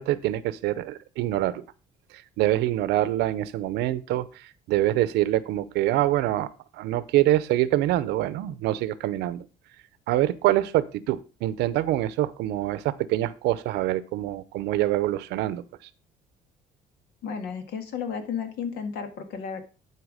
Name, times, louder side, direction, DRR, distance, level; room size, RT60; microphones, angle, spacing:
voice 1, 0.0-1.6 2.4-9.5 10.1-15.6, right 14 dB, 85° right, 16 dB, 0.7 m, -25 dB
voice 2, 17.2-19.6, left 6 dB, 80° left, 7 dB, 1.8 m, -33 dB
11.5 x 4.7 x 5.0 m, 0.33 s
cardioid pair, 110°, 17 cm